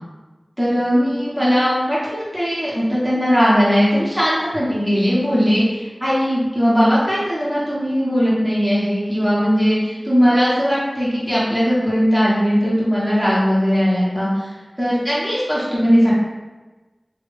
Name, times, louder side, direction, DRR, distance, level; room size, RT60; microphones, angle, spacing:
voice 1, 0.6-14.5 14.8-16.1, equal, 5° right, -9 dB, 1.4 m, -18 dB
3.2 x 2.4 x 3.4 m, 1.2 s
wide cardioid pair, 45°, 0 cm